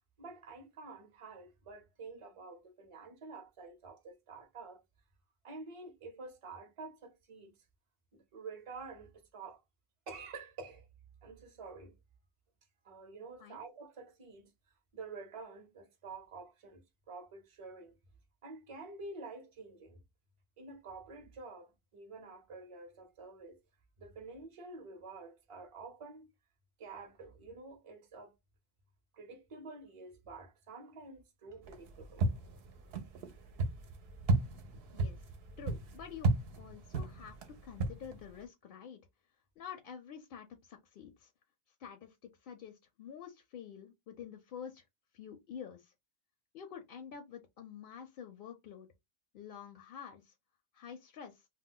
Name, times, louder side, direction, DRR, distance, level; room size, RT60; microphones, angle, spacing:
voice 1, 0.2-4.8 5.4-7.5 8.1-9.6 10.1-10.9 11.2-11.9 12.8-14.5 14.9-17.9 18.4-20.0 20.6-23.6 24.0-26.3 26.8-28.3 29.1-32.3, right 3 dB, 35° right, 0.6 m, -49 dB
sound 1, 31.6-38.4, right 2 dB, 65° right, 0.8 m, -35 dB
voice 2, 35.6-37.4 37.6-39.0 39.6-41.3 41.8-44.8 45.1-45.9 46.5-48.9 49.3-50.3 50.7-51.5, left 8 dB, 60° left, 0.6 m, -48 dB
2.3 x 2.1 x 3.6 m
omnidirectional pair, 1.2 m